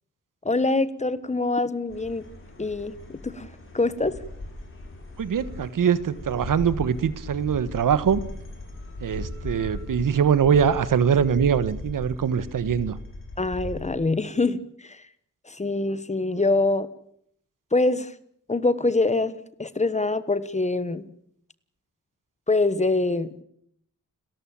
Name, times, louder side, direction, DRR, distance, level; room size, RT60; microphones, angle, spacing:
voice 1, 0.4-2.2 2.6-3.5 3.7-4.2 13.4-15.0 15.4-16.9 17.7-18.1 18.5-21.1 22.5-23.4, left 2 dB, 20° left, 15 dB, 1.2 m, -24 dB
sound 1, 1.9-13.9, left 2 dB, 40° left, 6.9 m, -38 dB
voice 2, 5.2-8.2 9.0-13.0, right 7 dB, 80° right, 15 dB, 1.4 m, -22 dB
29.5 x 13.5 x 8.8 m, 0.68 s
wide cardioid pair, 130°, 32 cm